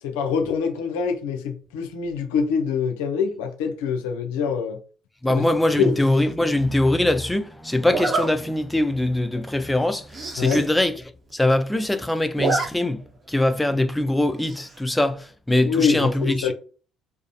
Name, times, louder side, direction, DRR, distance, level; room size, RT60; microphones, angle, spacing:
voice 1, 0.0-4.8 5.3-5.5 5.8-6.0 10.4-10.6 15.6-16.5, left 6 dB, 85° left, 0.5 m, -24 dB
voice 2, 5.2-11.0 11.3-13.0 13.3-16.5, left 1 dB, 10° left, 0.4 m, -22 dB
Zipper (clothing), 6.0-6.3 7.9-8.3 8.8-9.0 9.3-9.4 9.7-9.8 10.0-10.7 11.0-11.1 11.3-11.8 12.2-12.7 13.0-13.1 14.4-14.8, right 3 dB, 35° right, 0.8 m, -27 dB
2.4 x 2.0 x 2.6 m
supercardioid pair, 65°, 0 cm